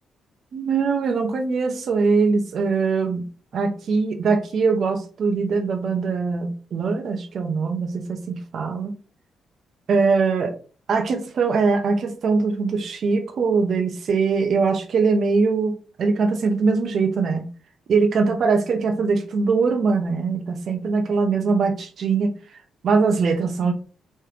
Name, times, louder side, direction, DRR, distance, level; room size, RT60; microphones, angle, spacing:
voice 1, 0.5-3.3 3.5-8.9 9.9-10.5 10.9-17.5 17.9-23.7, right 4 dB, 55° right, 6 dB, 0.7 m, -22 dB
3.5 x 3.3 x 3.2 m, 0.38 s
cardioid pair, 135°, 0 cm